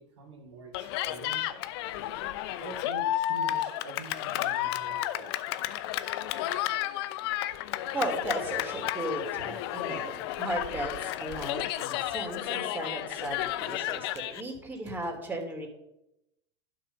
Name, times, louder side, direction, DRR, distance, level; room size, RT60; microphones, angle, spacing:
voice 1, 0.0-1.6 2.6-5.3 13.2-13.3 14.0-14.2, right 3 dB, 75° right, 0 dB, 3.0 m, -46 dB
Cheering, 0.7-14.4, left 13 dB, 60° left, 0.8 m, -32 dB
voice 2, 7.9-15.7, right 1 dB, 10° right, 1 dB, 3.2 m, -36 dB
11.5 x 6.6 x 5.6 m, 0.85 s
hypercardioid pair, 90°, 15 cm